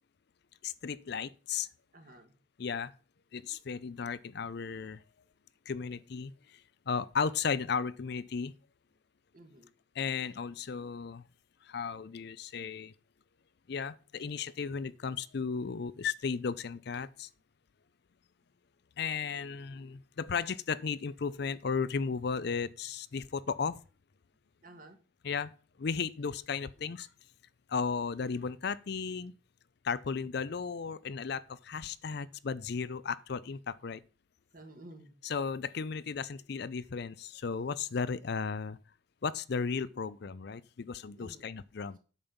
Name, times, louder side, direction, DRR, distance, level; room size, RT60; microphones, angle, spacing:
voice 1, 0.6-1.7 2.6-2.9 3.3-5.0 5.7-6.6 6.9-8.5 10.0-11.2 11.6-12.9 13.7-17.3 19.0-23.8 25.2-25.5 25.8-27.1 27.7-29.3 29.8-34.0 35.2-38.8 39.2-42.0, left 5 dB, 55° left, 0.5 m, -35 dB
voice 2, 1.9-2.3 9.3-9.7 24.6-25.0 34.5-35.2 41.2-41.5, right 1 dB, 45° right, 1.9 m, -52 dB
8.9 x 5.4 x 7.0 m
head